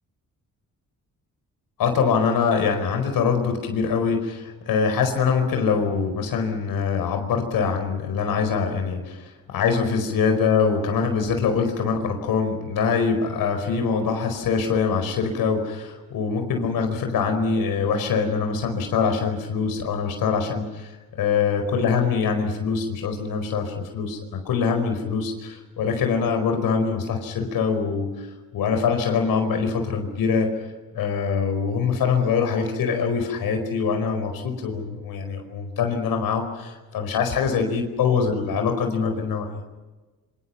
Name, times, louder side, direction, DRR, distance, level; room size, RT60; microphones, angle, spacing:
voice 1, 1.8-28.3 28.5-30.5 30.9-39.5, left 5 dB, 85° left, 5 dB, 4.9 m, -24 dB
27.5 x 26.5 x 6.0 m, 1.2 s
cardioid pair, 135°, 34 cm